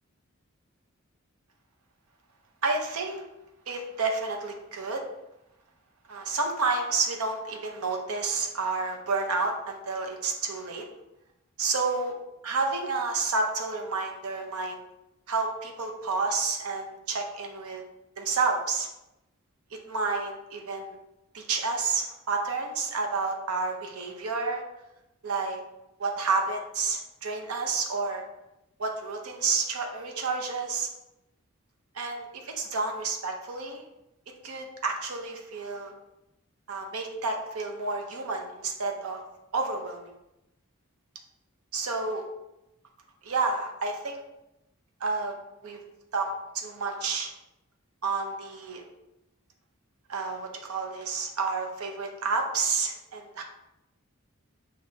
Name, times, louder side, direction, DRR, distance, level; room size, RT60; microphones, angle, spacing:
voice 1, 2.6-3.2 3.7-5.0 6.1-10.9 11.6-12.1 12.4-14.8 15.3-17.8 18.2-18.9 19.7-21.0 21.3-24.6 25.2-25.6 26.0-28.2 28.8-30.9 31.9-33.8 34.4-35.9 36.7-39.2 39.5-40.1 41.7-42.2 43.2-44.2 45.0-45.3 45.6-45.8 46.1-47.3 48.0-48.8 50.1-53.4, right 4 dB, 90° right, 2 dB, 0.7 m, -30 dB
6.1 x 2.6 x 2.7 m, 0.91 s
head